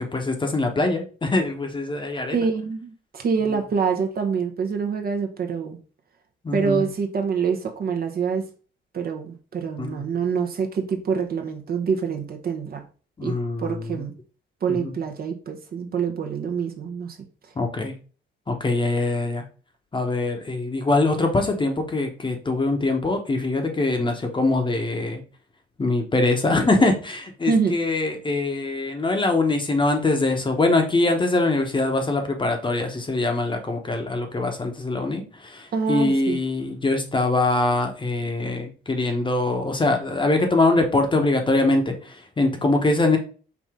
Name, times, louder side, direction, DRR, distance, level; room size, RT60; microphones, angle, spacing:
voice 1, 0.0-2.5 6.4-6.9 9.8-10.0 13.2-14.0 14.7-14.9 17.6-17.9 18.5-19.4 19.9-25.2 25.8-43.2, left 2 dB, 25° left, 4 dB, 0.9 m, -23 dB
voice 2, 2.3-5.8 6.5-8.5 8.9-12.8 13.2-14.1 14.6-17.2 27.5-27.8 35.7-36.4, right 6 dB, 50° right, 4 dB, 0.9 m, -26 dB
4.8 x 2.7 x 3.5 m, 0.38 s
cardioid pair, 90°, 20 cm